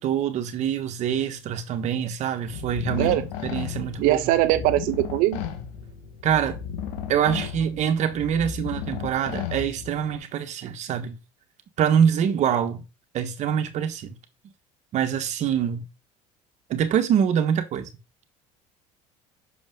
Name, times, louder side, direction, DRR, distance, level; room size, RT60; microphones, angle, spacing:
voice 1, 0.0-3.2 3.4-4.3 6.2-6.6 7.1-11.2 11.8-12.8 13.1-14.2 14.9-15.8 16.7-17.9, right 8 dB, 55° right, 1.4 m, -25 dB
sound 1, 2.5-10.2, left 8 dB, 80° left, 1.4 m, -34 dB
voice 2, 4.0-5.4, right 16 dB, 70° right, 0.8 m, -21 dB
6.5 x 5.2 x 3.7 m
supercardioid pair, 105°, 15 cm